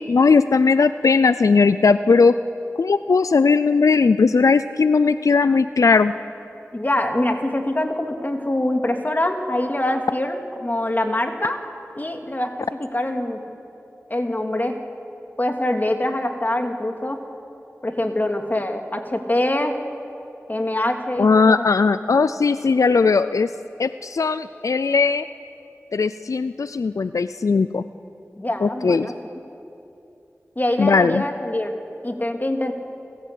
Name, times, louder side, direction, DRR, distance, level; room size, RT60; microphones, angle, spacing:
voice 1, 0.0-2.3 2.8-6.1 21.2-23.5 23.8-25.2 25.9-27.8 28.6-29.1 30.8-31.2, left 4 dB, 90° left, 13 dB, 0.4 m, -18 dB
voice 2, 6.7-11.6 11.9-13.4 14.1-14.8 15.4-17.2 17.8-19.8 20.5-21.6 28.4-29.1 30.6-31.7 32.0-32.7, left 1 dB, 35° left, 4 dB, 2.4 m, -24 dB
29.0 x 15.5 x 8.4 m, 2.8 s
wide cardioid pair, 45°, 5 cm